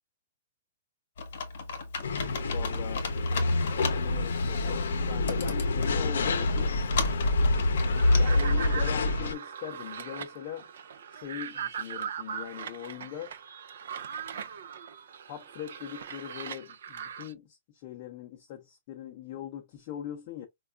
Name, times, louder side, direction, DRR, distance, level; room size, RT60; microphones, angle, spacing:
Computer keyboard, 1.2-8.2, left 5 dB, 50° left, 1.0 m, -37 dB
sound 1, 2.0-9.3, left 2 dB, 80° left, 0.6 m, -26 dB
voice 1, 2.4-3.1 3.7-6.7 8.1-10.7 11.1-13.3 14.3-14.4 15.3-20.5, left 10 dB, 30° left, 0.5 m, -41 dB
sound 2, 7.8-17.3, right 7 dB, 60° right, 0.3 m, -40 dB
4.5 x 2.3 x 2.4 m
hypercardioid pair, 175°, 0 cm